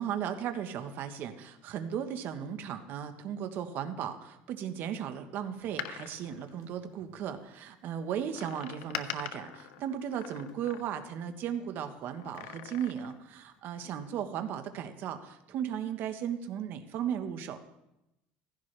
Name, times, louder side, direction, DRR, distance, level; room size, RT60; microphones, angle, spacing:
voice 1, 0.0-17.6, right 9 dB, 55° right, 8 dB, 1.3 m, -36 dB
Door, 5.6-7.4 8.3-11.2 12.1-13.3 13.6-13.7, left 11 dB, 85° left, 0.9 m, -43 dB
16.0 x 15.5 x 3.4 m, 0.90 s
cardioid pair, 120°, 4 cm